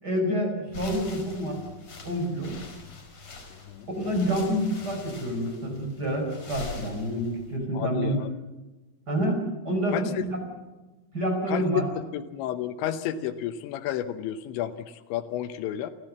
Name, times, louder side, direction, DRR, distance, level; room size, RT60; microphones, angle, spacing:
voice 1, 0.0-1.6 2.0-2.6 4.0-8.2 9.1-10.4 11.1-11.9, equal, 20° right, 2 dB, 5.1 m, -28 dB
sound 1, 0.7-7.6, left 4 dB, 35° left, 5.9 m, -43 dB
voice 2, 3.5-3.9 7.7-8.3 9.9-10.3 11.5-15.9, left 11 dB, 80° left, 10 dB, 3.2 m, -32 dB
28.5 x 15.5 x 7.4 m, 1.2 s
omnidirectional pair, 5.3 m